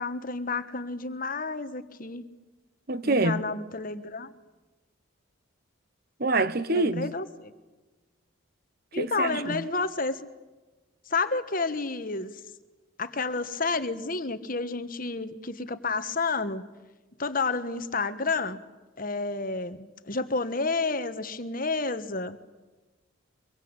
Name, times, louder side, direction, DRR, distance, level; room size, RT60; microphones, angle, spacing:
voice 1, 0.0-2.3 3.0-4.3 6.7-7.5 8.9-10.2 11.1-12.3 13.0-16.6 17.2-18.6 19.0-22.4, left 3 dB, 40° left, 1.3 m, -30 dB
voice 2, 2.9-3.4 6.2-7.1 9.0-9.6, right 2 dB, 45° right, 1.1 m, -26 dB
24.5 x 23.5 x 8.9 m
head